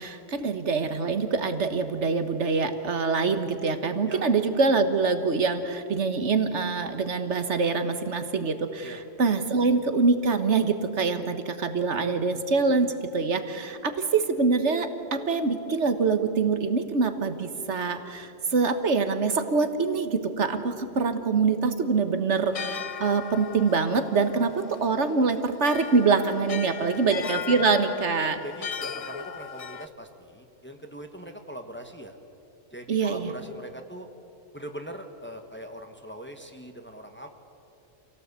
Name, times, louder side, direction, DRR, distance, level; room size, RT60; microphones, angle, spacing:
voice 1, 0.0-28.4 32.9-33.3, right 4 dB, 80° right, 9 dB, 1.7 m, -25 dB
sound 1, 22.4-29.9, left 7 dB, 45° left, 0.5 m, -38 dB
voice 2, 26.8-27.1 28.4-32.2 32.7-34.1 34.5-37.3, equal, 10° left, 4 dB, 1.4 m, -41 dB
27.0 x 17.0 x 8.2 m, 2.8 s
omnidirectional pair, 1.2 m